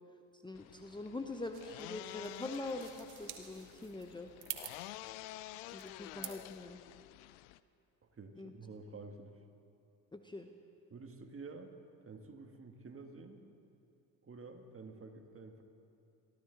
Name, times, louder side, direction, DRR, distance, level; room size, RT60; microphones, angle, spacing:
voice 1, 0.3-4.3 5.7-6.8 8.4-8.5 10.1-10.5, left 2 dB, 10° left, 5 dB, 0.9 m, -43 dB
sound 1, 0.5-7.6, left 16 dB, 75° left, 0.6 m, -50 dB
sound 2, 1.5-6.6, right 11 dB, 60° right, 1.7 m, -49 dB
voice 2, 8.1-9.4 10.9-11.7 12.0-13.5 14.2-15.6, right 3 dB, 30° right, 5 dB, 1.8 m, -50 dB
23.0 x 14.5 x 4.0 m, 2.6 s
hypercardioid pair, 65°, 42 cm